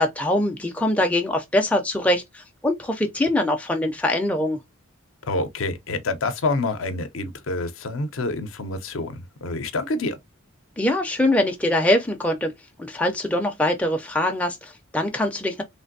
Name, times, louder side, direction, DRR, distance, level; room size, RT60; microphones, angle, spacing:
voice 1, 0.0-4.6 10.8-12.5 12.8-15.6, left 1 dB, 5° left, 0.4 m, -23 dB
voice 2, 5.3-10.2, left 2 dB, 65° left, 0.5 m, -27 dB
3.3 x 2.5 x 2.6 m
head